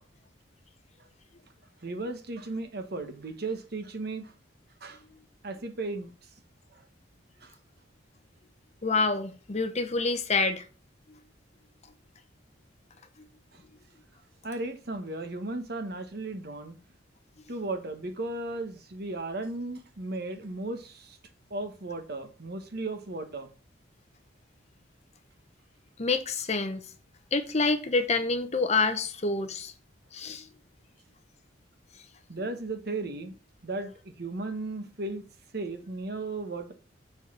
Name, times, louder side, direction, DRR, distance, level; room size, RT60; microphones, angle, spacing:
voice 1, 1.8-4.3 4.8-5.0 5.4-6.1 6.7-6.8 7.4-7.5 13.5-13.6 14.4-16.8 17.5-21.2 21.5-23.5 32.3-33.3 33.6-35.2 35.5-36.7, right 2 dB, 50° right, 1.1 m, -35 dB
voice 2, 8.8-10.6 26.0-26.8 27.3-29.7 30.1-30.5, left 3 dB, 35° left, 0.8 m, -27 dB
7.1 x 4.1 x 6.1 m
head